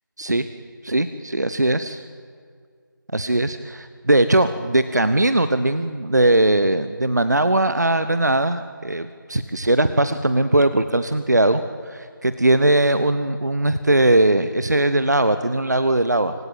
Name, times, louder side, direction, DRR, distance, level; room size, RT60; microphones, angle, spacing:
voice 1, 0.8-2.0 3.1-16.3, right 1 dB, 55° right, 11 dB, 1.1 m, -20 dB
26.0 x 16.5 x 9.2 m, 2.1 s
figure-of-eight pair, 170°, 11 cm